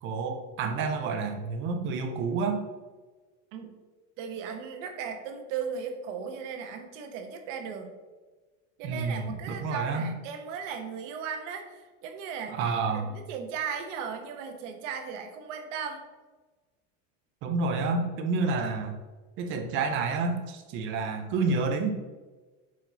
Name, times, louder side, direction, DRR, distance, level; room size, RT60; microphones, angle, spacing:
voice 1, 0.0-2.6 8.8-10.1 12.5-13.1 17.4-19.0 19.4-21.9, right 4 dB, 35° right, 5 dB, 0.5 m, -29 dB
voice 2, 4.2-7.9 8.8-16.0, right 6 dB, 75° right, 5 dB, 1.1 m, -37 dB
5.8 x 4.6 x 3.9 m, 1.3 s
cardioid pair, 180°, 37 cm